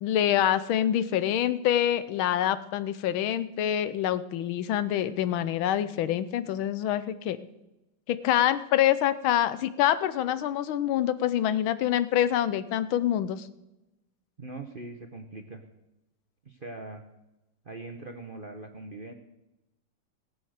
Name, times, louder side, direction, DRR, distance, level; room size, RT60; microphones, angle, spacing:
voice 1, 0.0-7.4 8.1-13.5, left 11 dB, 80° left, 14 dB, 1.5 m, -26 dB
voice 2, 14.4-15.6 16.4-17.0 17.6-19.1, right 2 dB, 40° right, 4 dB, 0.7 m, -41 dB
18.0 x 8.0 x 6.5 m, 0.96 s
omnidirectional pair, 2.2 m